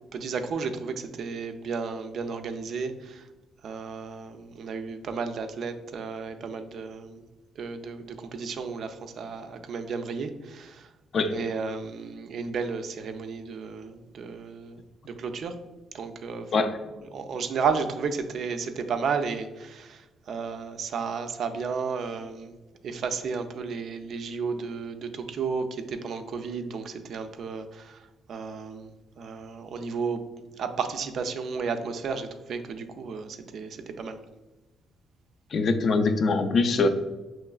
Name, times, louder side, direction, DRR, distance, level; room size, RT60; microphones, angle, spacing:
voice 1, 0.1-3.3 3.6-7.2 7.6-10.9 11.3-15.6 15.9-16.5 17.1-22.5 22.8-30.2 30.6-34.2, right 5 dB, 65° right, 7 dB, 0.4 m, -33 dB
voice 2, 35.5-36.9, left 3 dB, 55° left, 8 dB, 0.4 m, -23 dB
5.9 x 3.1 x 2.3 m, 1.1 s
cardioid pair, 90°, 0 cm